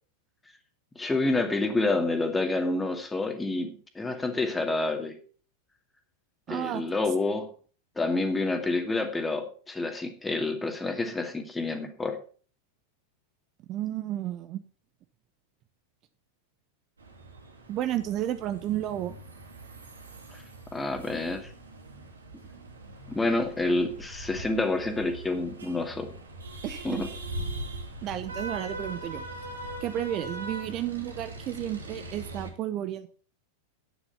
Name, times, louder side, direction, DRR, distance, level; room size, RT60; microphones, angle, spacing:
voice 1, 1.0-5.1 6.5-7.5 8.0-12.2 20.3-20.4 20.7-21.5 23.1-26.1 26.8-27.1, left 2 dB, 10° left, 6 dB, 2.3 m, -28 dB
voice 2, 6.5-6.8 13.7-14.6 17.7-19.2 26.6-27.0 28.0-29.2 29.8-33.1, right 12 dB, 35° right, 11 dB, 0.9 m, -32 dB
sound 1, 17.0-32.5, right 1 dB, 75° right, 3.0 m, -41 dB
10.5 x 9.9 x 5.7 m, 0.40 s
figure-of-eight pair, 90°, 0 cm